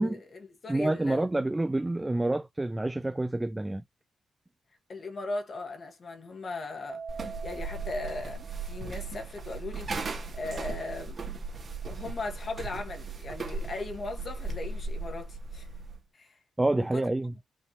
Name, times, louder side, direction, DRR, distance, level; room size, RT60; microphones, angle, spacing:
voice 1, 0.0-1.3 4.9-11.2 11.8-15.7 16.1-16.4 16.8-17.0, left 3 dB, 40° left, 1.5 m, -38 dB
voice 2, 0.7-3.8 16.6-17.3, right 2 dB, 10° right, 0.4 m, -28 dB
Keyboard (musical), 6.9-9.4, right 5 dB, 75° right, 2.1 m, -45 dB
sound 1, 7.1-16.0, right 3 dB, 40° right, 1.8 m, -37 dB
5.3 x 3.1 x 2.9 m
wide cardioid pair, 145°, 0 cm